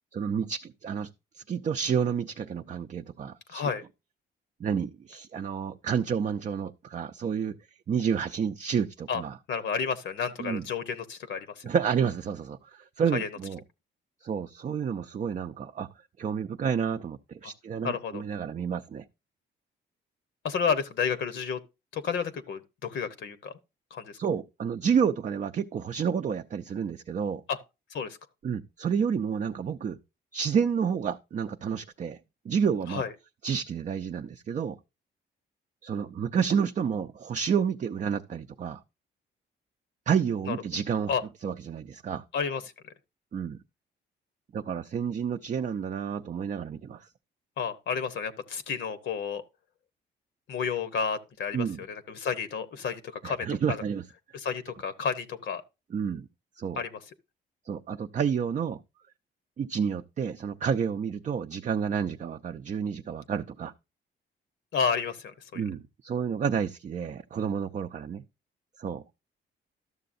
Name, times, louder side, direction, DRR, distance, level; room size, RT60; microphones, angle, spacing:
voice 1, 0.1-1.1 1.3-3.6 4.6-7.6 7.9-9.4 10.4-10.6 11.6-13.6 14.2-15.9 16.2-19.0 24.2-27.4 28.4-30.0 30.3-32.2 32.4-33.0 33.4-34.8 35.8-38.8 40.1-41.1 41.4-42.2 43.3-43.6 44.5-47.1 51.5-51.8 53.2-54.0 55.9-56.3 56.6-56.8 57.7-58.8 59.6-63.7 65.5-68.2 68.8-69.0, right 7 dB, 40° right, 0.5 m, -30 dB
voice 2, 3.5-3.8 9.1-9.2 9.5-11.6 13.1-13.3 17.4-17.5 17.8-18.2 20.4-21.6 21.9-23.5 23.9-24.2 27.5-27.6 27.9-28.2 32.9-33.1 40.5-40.6 41.1-41.2 42.3-42.9 47.6-49.4 50.5-53.8 54.3-55.6 56.8-57.0 64.7-65.6, left 6 dB, 65° left, 0.9 m, -31 dB
12.5 x 6.7 x 2.6 m
cardioid pair, 90°, 20 cm